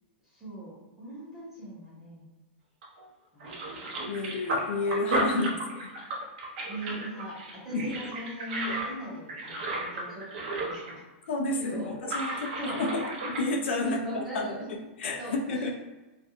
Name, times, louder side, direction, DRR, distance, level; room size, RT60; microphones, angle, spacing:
voice 1, 0.3-2.3 3.3-3.9 5.3-5.5 6.7-11.0 11.6-11.9 12.2-12.8 13.8-14.7 15.2-15.7, right 1 dB, 5° right, -9 dB, 0.8 m, -40 dB
sound 1, 2.8-3.0 3.4-11.0 11.2-11.3 12.0-13.4, right 2 dB, 50° right, 0.6 m, -34 dB
voice 2, 4.1-5.5 7.7-8.1 11.3-14.5 15.0-15.7, left 2 dB, 75° left, 1 dB, 0.4 m, -30 dB
2.4 x 2.1 x 2.8 m, 1.1 s
supercardioid pair, 170°, 6 cm